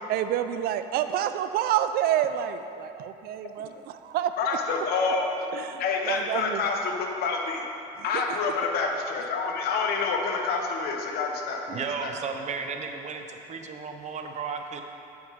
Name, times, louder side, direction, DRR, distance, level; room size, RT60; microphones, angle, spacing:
voice 1, 0.1-4.3 5.5-6.6 8.1-8.4, right 11 dB, 60° right, 10 dB, 0.4 m, -28 dB
voice 2, 4.4-5.3 5.8-7.6 8.0-12.1, left 4 dB, 60° left, 2 dB, 1.1 m, -28 dB
voice 3, 11.7-14.8, right 5 dB, 40° right, 5 dB, 0.8 m, -34 dB
9.2 x 7.7 x 3.6 m, 2.9 s
supercardioid pair, 100°, 18 cm